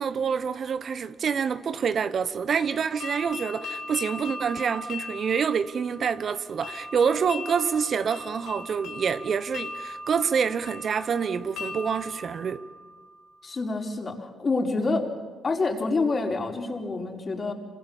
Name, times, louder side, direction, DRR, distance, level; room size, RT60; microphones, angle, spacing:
voice 1, 0.0-12.7, right 6 dB, 55° right, 1.0 m, -27 dB
sound 1, 2.6-13.4, left 2 dB, 80° left, 3.1 m, -39 dB
voice 2, 13.4-15.1 15.4-17.5, left 3 dB, 40° left, 4.5 m, -27 dB
26.5 x 25.0 x 7.3 m
supercardioid pair, 65°, 0 cm